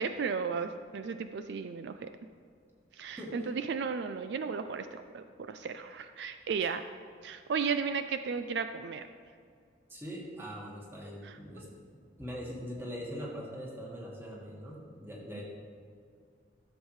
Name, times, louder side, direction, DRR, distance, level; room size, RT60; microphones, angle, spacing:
voice 1, 0.0-2.1 3.0-6.8 7.2-9.0 11.2-11.3, right 5 dB, 70° right, 9 dB, 0.3 m, -34 dB
voice 2, 3.1-3.5 9.9-11.7 12.2-15.4, equal, 15° right, -4 dB, 1.7 m, -42 dB
13.5 x 7.2 x 3.2 m, 2.2 s
head